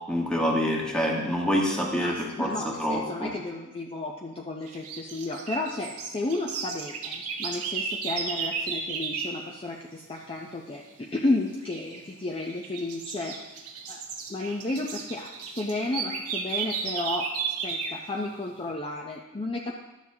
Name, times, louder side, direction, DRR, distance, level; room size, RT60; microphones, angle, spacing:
voice 1, 0.1-3.3, equal, 5° left, -1 dB, 1.3 m, -27 dB
voice 2, 1.9-13.4 13.9-14.0 14.3-17.3 17.6-19.8, left 2 dB, 25° left, 0 dB, 0.5 m, -32 dB
sound 1, 4.7-9.4 11.6-12.0 12.5-18.0, right 5 dB, 90° right, 0.9 m, -34 dB
12.0 x 7.2 x 2.7 m, 1.0 s
head